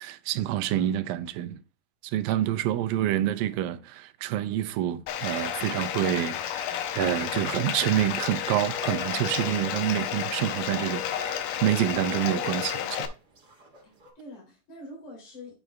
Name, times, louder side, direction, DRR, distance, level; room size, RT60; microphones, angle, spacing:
voice 1, 0.0-1.6 2.0-13.1, right 12 dB, 90° right, 2.3 m, -27 dB
Bathtub (filling or washing), 5.1-13.1, left 10 dB, 85° left, 2.4 m, -31 dB
sound 1, 5.3-14.1, right 2 dB, 35° right, 1.9 m, -51 dB
voice 2, 13.8-15.5, left 1 dB, 60° left, 4.8 m, -45 dB
9.0 x 6.8 x 2.3 m
omnidirectional pair, 4.0 m